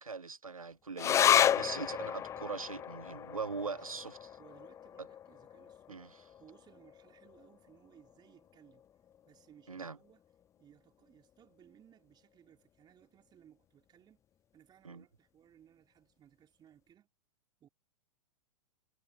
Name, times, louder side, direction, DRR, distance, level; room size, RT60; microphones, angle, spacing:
voice 1, 0.0-4.3 5.9-6.1 9.7-10.0 14.8-15.0, right 4 dB, 90° right, 1.3 m, -41 dB
sound 1, 1.0-7.8 8.1-8.2 8.5-9.2 9.7-9.8, left 9 dB, 15° left, 0.4 m, -32 dB
voice 2, 3.5-3.9 4.4-8.8 9.2-10.2 10.6-14.2 14.5-17.1 17.6-17.7, right 10 dB, 25° right, 4.0 m, -62 dB
figure-of-eight pair, 105°, 17 cm